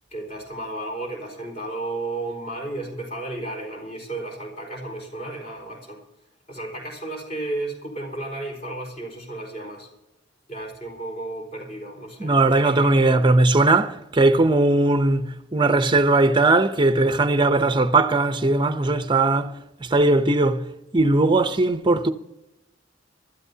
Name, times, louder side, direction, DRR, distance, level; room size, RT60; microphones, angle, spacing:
voice 1, 0.1-6.0 6.5-9.9 10.5-12.9, right 2 dB, 35° left, 4.3 m, -33 dB
voice 2, 12.2-19.6 19.8-20.7 20.9-22.1, right 2 dB, 25° right, 0.6 m, -19 dB
23.5 x 13.0 x 2.8 m
head